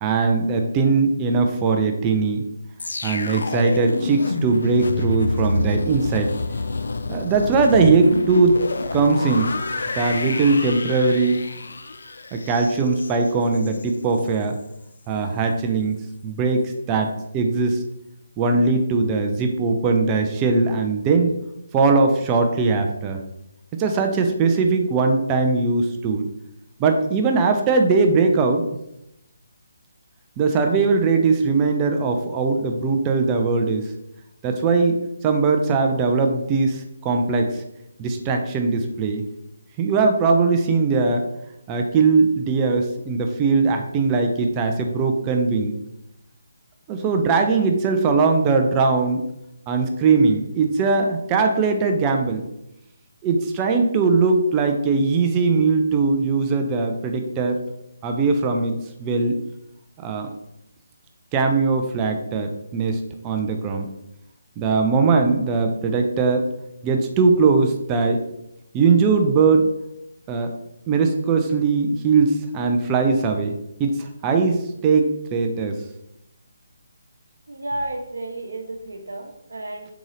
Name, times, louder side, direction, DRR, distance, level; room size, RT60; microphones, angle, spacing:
voice 1, 0.0-2.4 3.0-6.3 7.1-8.6 8.9-9.5 9.9-11.4 12.3-14.6 15.1-15.9 16.2-17.8 18.4-21.3 21.7-23.2 23.8-26.3 26.8-28.6 30.4-33.9 34.4-37.6 38.0-39.2 39.8-41.2 41.7-45.8 46.9-49.2 49.7-52.5 53.2-57.6 58.0-59.4 60.0-60.3 61.3-63.9 64.6-66.4 66.8-68.2 68.7-69.7 70.3-70.5 70.9-73.5 73.8-75.8, right 4 dB, 20° right, 4 dB, 0.4 m, -20 dB
sound 1, 2.8-13.9 14.2-14.4, left 3 dB, 60° left, 0.3 m, -28 dB
voice 2, 77.5-79.9, right 1 dB, 70° right, 3 dB, 0.9 m, -32 dB
3.9 x 3.6 x 3.2 m, 0.83 s
figure-of-eight pair, 145°, 0 cm